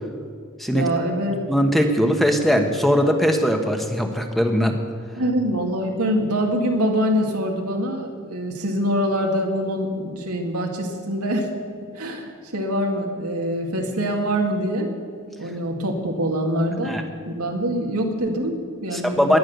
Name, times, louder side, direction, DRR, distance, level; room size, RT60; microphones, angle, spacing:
voice 1, 0.7-1.4 5.2-11.5 11.9-14.9 15.4-19.4, equal, 90° right, 2 dB, 2.3 m, -24 dB
voice 2, 1.5-4.7 16.8-17.0 18.9-19.4, equal, ahead, 4 dB, 1.2 m, -20 dB
17.0 x 11.0 x 6.8 m, 2.1 s
head